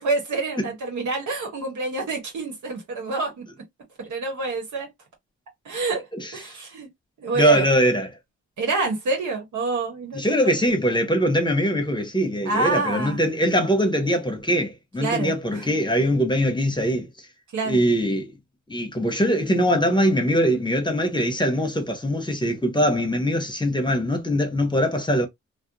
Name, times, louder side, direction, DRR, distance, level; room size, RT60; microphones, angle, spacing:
voice 1, 0.0-3.5 4.0-4.9 5.6-6.0 6.3-6.9 7.2-7.7 8.6-10.6 12.5-13.2 15.0-15.7 17.5-17.8, right 3 dB, 85° right, 1.1 m, -27 dB
voice 2, 7.4-8.1 10.1-17.1 17.6-18.3 18.7-25.3, equal, 15° left, 0.9 m, -22 dB
2.4 x 2.1 x 2.7 m
cardioid pair, 65°, 29 cm